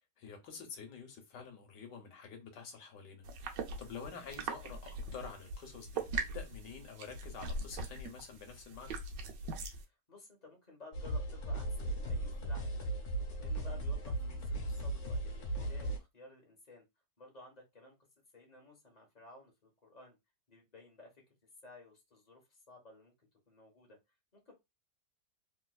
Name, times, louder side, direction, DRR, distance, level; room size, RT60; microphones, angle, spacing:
voice 1, 0.2-9.0 14.6-14.7, left 6 dB, 75° left, 1.5 m, -48 dB
sound 1, 3.2-9.8, right 3 dB, 75° right, 1.3 m, -41 dB
voice 2, 9.9-13.1 13.4-16.8 17.2-17.9 18.3-20.2 20.5-21.1 21.6-24.0 24.5-24.6, left 3 dB, 25° left, 1.2 m, -56 dB
sound 2, 10.9-16.0, right 1 dB, 60° left, 1.6 m, -37 dB
3.2 x 3.1 x 2.4 m
omnidirectional pair, 1.9 m